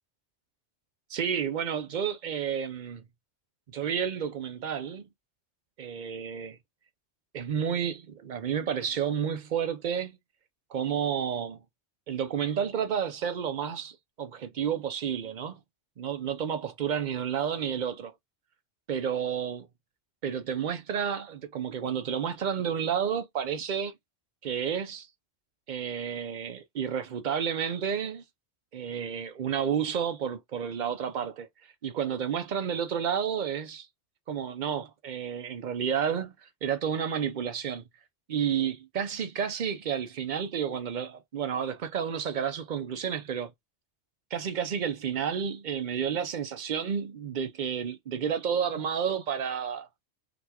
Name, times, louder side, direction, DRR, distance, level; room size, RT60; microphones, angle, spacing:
voice 1, 1.1-3.0 3.7-5.1 5.8-6.6 7.3-10.2 10.7-11.6 12.1-15.6 16.0-18.1 18.9-19.7 20.2-23.9 24.4-25.1 25.7-28.2 28.7-31.5 31.8-33.9 34.3-37.8 38.3-43.5 44.3-49.9, right 8 dB, 55° right, 0.6 m, -31 dB
3.9 x 2.3 x 2.8 m
omnidirectional pair, 1.2 m